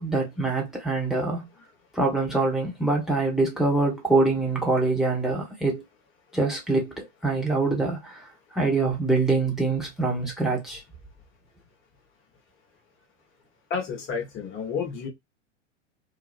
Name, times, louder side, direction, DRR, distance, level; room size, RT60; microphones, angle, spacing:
voice 1, 0.0-1.5 1.9-5.8 6.3-10.8, right 3 dB, ahead, 1.1 m, -25 dB
voice 2, 13.7-15.1, left 6 dB, 35° left, 1.1 m, -30 dB
3.0 x 2.2 x 2.3 m
figure-of-eight pair, 85°, 37 cm